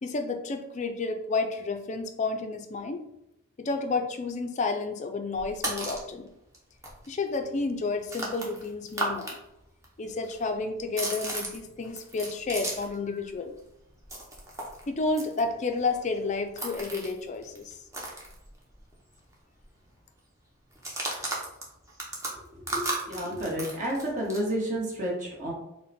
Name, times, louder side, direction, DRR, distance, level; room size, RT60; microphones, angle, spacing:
voice 1, 0.0-3.0 3.6-6.3 7.1-9.4 10.0-13.5 14.9-17.8, left 3 dB, 35° left, 6 dB, 0.3 m, -31 dB
sound 1, 5.3-6.1 6.5-6.6 6.8-9.4 9.6-13.0 13.3-18.9 19.2-19.3 19.6-20.0 20.7-24.5, right 2 dB, 15° right, 0.7 m, -36 dB
voice 2, 22.5-25.5, right 1 dB, 35° right, -3 dB, 1.2 m, -31 dB
3.9 x 2.1 x 4.1 m, 0.88 s
head